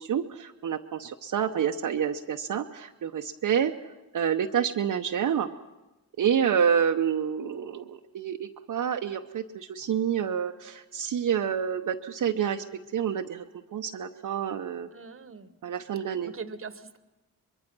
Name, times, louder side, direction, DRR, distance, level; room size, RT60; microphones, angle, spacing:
voice 1, 0.0-3.7 4.1-5.5 6.2-12.6 12.9-13.4 13.7-14.9 15.6-16.3, right 8 dB, 60° right, 3 dB, 0.9 m, -28 dB
voice 2, 14.9-15.5 16.2-17.0, right 5 dB, 35° right, 13 dB, 1.2 m, -41 dB
24.0 x 22.0 x 6.1 m, 1.1 s
cardioid pair, 80°, 36 cm